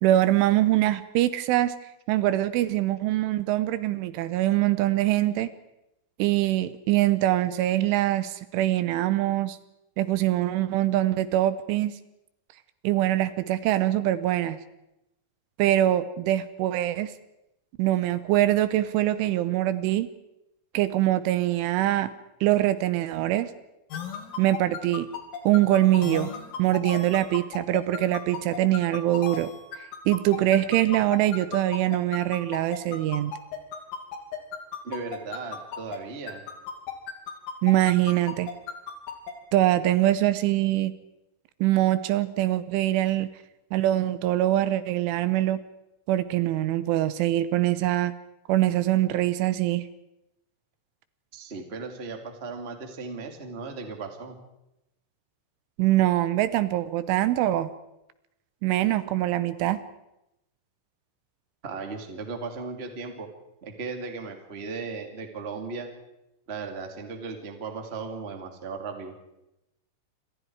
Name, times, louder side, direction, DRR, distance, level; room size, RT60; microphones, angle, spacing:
voice 1, 0.0-1.8 2.1-5.5 6.2-9.6 10.0-11.9 12.8-14.6 15.6-17.1 17.8-20.1 20.7-22.1 22.4-23.5 24.4-25.1 25.4-26.3 26.6-29.5 29.8-33.3 37.6-38.5 39.5-40.9 41.6-43.3 43.7-45.6 46.1-48.1 48.5-49.8 55.8-57.7 58.6-59.8, right 14 dB, 80° right, 14 dB, 3.3 m, -23 dB
sound 1, 23.9-36.0 36.3-39.3, left 8 dB, 90° left, 5.5 m, -35 dB
voice 2, 34.8-36.4 51.3-54.4 61.6-63.3 63.6-65.9 66.5-69.1, right 4 dB, 20° right, 4 dB, 1.7 m, -36 dB
28.5 x 25.0 x 4.8 m, 0.89 s
omnidirectional pair, 5.7 m